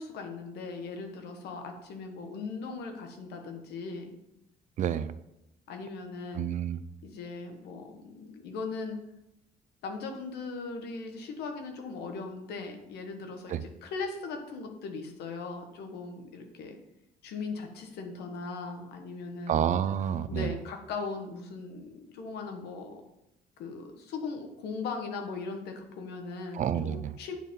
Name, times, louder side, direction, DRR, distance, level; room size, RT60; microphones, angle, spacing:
voice 1, 0.0-4.1 5.7-6.5 7.0-9.0 9.8-16.8 17.2-19.7 20.3-23.0 23.6-27.3, left 4 dB, 75° left, 4 dB, 1.2 m, -39 dB
voice 2, 4.8-5.1 6.3-6.8 13.5-13.6 19.5-20.5 26.5-27.1, right 9 dB, 45° right, 14 dB, 0.4 m, -29 dB
9.1 x 4.3 x 3.7 m, 0.86 s
cardioid pair, 110°, 17 cm